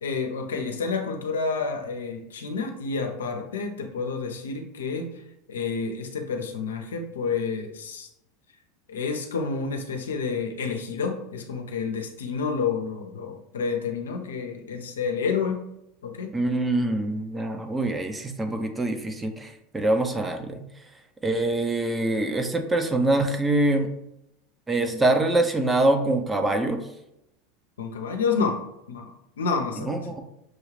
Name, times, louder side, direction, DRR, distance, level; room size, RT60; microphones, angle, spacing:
voice 1, 0.0-5.2 5.5-8.1 8.9-15.7 16.0-16.3 27.8-28.6 28.9-30.1, left 5 dB, 85° left, 4 dB, 0.7 m, -29 dB
voice 2, 16.3-20.6 21.2-23.9 24.7-26.8 29.8-30.2, right 2 dB, 15° right, 6 dB, 0.6 m, -24 dB
6.2 x 2.3 x 3.2 m, 0.83 s
hypercardioid pair, 90°, 0 cm